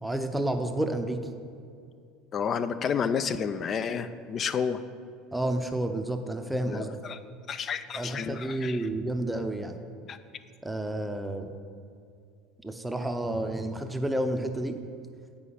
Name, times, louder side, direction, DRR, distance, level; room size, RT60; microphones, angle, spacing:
voice 1, 0.0-1.2 5.3-7.0 7.9-9.8 10.6-11.5 12.6-14.8, right 1 dB, 5° right, 6 dB, 0.7 m, -30 dB
voice 2, 2.3-4.8 6.7-7.2 7.5-8.9 10.1-10.2, left 6 dB, 40° left, 12 dB, 0.4 m, -30 dB
8.3 x 5.1 x 5.6 m, 2.3 s
supercardioid pair, 95°, 0 cm